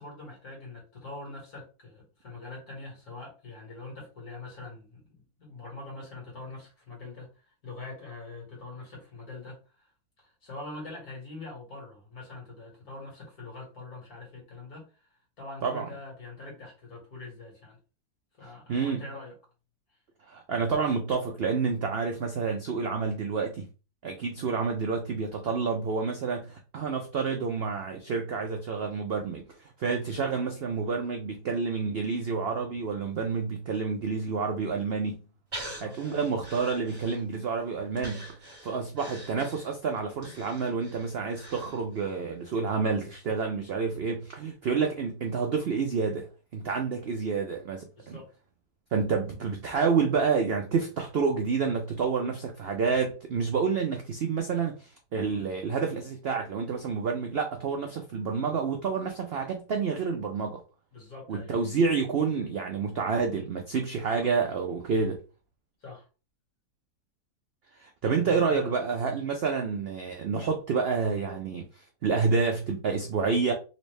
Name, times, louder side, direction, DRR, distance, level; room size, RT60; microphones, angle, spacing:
voice 1, 0.0-9.9 10.2-15.1 15.4-17.8 18.4-19.3 35.7-36.2 38.6-38.8 48.0-48.3 60.9-61.5 64.2-64.3 65.8-66.1 68.0-69.0, left 2 dB, 65° left, 2.3 m, -44 dB
voice 2, 18.7-19.0 20.3-23.7 24.0-29.4 29.8-35.2 35.8-46.3 46.5-48.2 48.9-60.6 61.3-65.2 67.8-71.7 72.0-73.5, right 5 dB, 75° right, 0.5 m, -29 dB
Breathing, 35.5-37.5 38.0-42.2 42.5-42.6, right 1 dB, 30° right, 1.8 m, -44 dB
4.1 x 2.6 x 3.2 m
omnidirectional pair, 1.7 m